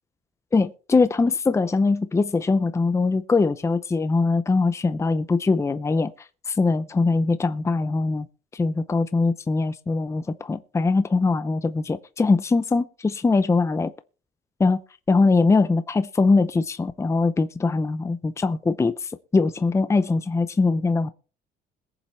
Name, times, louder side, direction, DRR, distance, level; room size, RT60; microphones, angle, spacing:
voice 1, 0.5-6.1 6.5-8.3 8.5-13.9 14.6-14.8 15.1-21.1, left 3 dB, 15° left, 0.6 m, -22 dB
21.5 x 7.4 x 3.3 m
cardioid pair, 110°, 17 cm